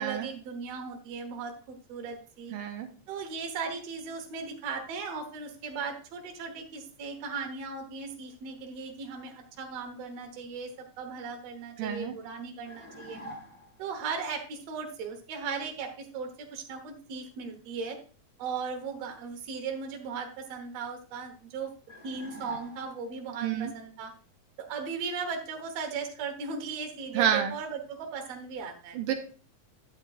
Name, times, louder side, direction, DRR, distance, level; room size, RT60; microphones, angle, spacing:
voice 1, 0.0-2.5 3.1-13.2 13.8-18.0 18.4-21.7 22.0-24.1 24.6-29.0, right 5 dB, 60° right, 3 dB, 2.3 m, -37 dB
voice 2, 2.5-2.9 11.8-12.1 23.4-23.7 27.1-27.5 29.0-29.1, right 9 dB, 85° right, 5 dB, 2.4 m, -28 dB
sound 1, 12.7-13.8 21.9-23.2, equal, 20° left, 0.8 m, -45 dB
9.5 x 9.4 x 2.5 m, 0.38 s
omnidirectional pair, 3.6 m